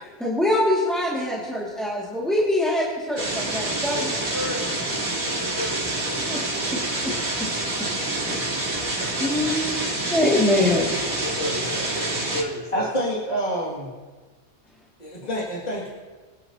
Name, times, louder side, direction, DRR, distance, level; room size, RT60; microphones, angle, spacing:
voice 1, 0.0-4.1 6.3-6.4 6.7-6.8 8.3-8.4 9.2-10.9, left 1 dB, ahead, -6 dB, 2.1 m, -24 dB
sound 1, 3.2-12.4, right 2 dB, 90° right, 2.6 m, -27 dB
voice 2, 4.3-7.2 8.3-8.4 8.8-9.3 11.2-12.9, left 1 dB, 70° right, -10 dB, 3.3 m, -34 dB
voice 3, 12.7-13.9 15.0-15.9, equal, 30° left, -6 dB, 2.3 m, -27 dB
24.5 x 10.5 x 2.8 m, 1.4 s
omnidirectional pair, 1.4 m